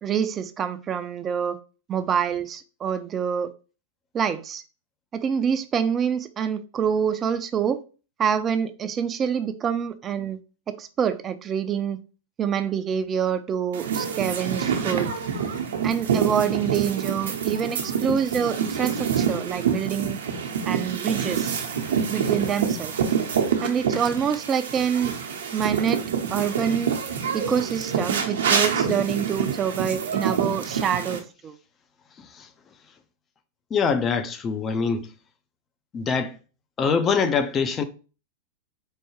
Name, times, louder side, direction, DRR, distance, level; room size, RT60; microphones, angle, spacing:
voice 1, 0.0-1.6 1.9-3.5 4.1-4.6 5.1-7.8 8.2-10.4 10.7-12.0 12.4-15.1 15.8-20.2 20.7-21.6 22.1-22.9 23.6-25.1 25.5-26.0 26.3-27.0 27.3-31.5, right 8 dB, 30° right, 0.5 m, -26 dB
sound 1, 13.7-31.2, right 7 dB, 70° right, 0.7 m, -26 dB
voice 2, 33.7-35.1 35.9-36.4 36.8-37.8, left 5 dB, 25° left, 0.5 m, -24 dB
4.6 x 2.3 x 3.1 m
hypercardioid pair, 95°, 0 cm